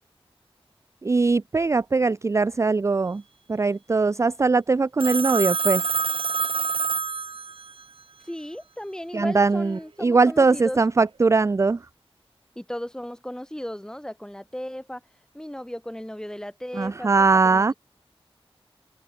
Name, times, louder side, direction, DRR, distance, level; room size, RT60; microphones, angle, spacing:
voice 1, 1.0-3.2 3.5-5.8 9.1-11.8 16.8-17.7, right 4 dB, 30° right, 0.3 m, -21 dB
Telephone, 5.0-7.8, right 5 dB, 65° right, 0.6 m, -26 dB
voice 2, 8.2-10.8 12.5-15.0 15.3-17.7, equal, 5° left, 5.0 m, -36 dB
wide cardioid pair, 95°, 10 cm